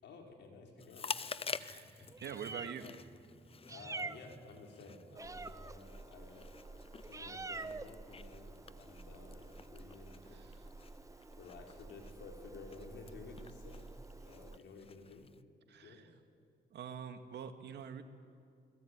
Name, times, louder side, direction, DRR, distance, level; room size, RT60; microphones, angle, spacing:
voice 1, 0.0-1.9 3.7-6.5 6.9-10.5 11.4-13.9 14.2-15.3 15.8-16.1, left 3 dB, 75° left, 2 dB, 4.8 m, -53 dB
Chewing mastication, 0.8-15.4, left 5 dB, 30° left, 0.8 m, -49 dB
voice 2, 1.6-2.9 10.3-10.5 15.7-16.1 16.7-18.0, right 8 dB, 70° right, 7 dB, 2.2 m, -46 dB
Meow, 2.0-14.6, right 3 dB, 15° right, 0.8 m, -49 dB
28.5 x 21.5 x 9.8 m, 2.3 s
cardioid pair, 90°, 18 cm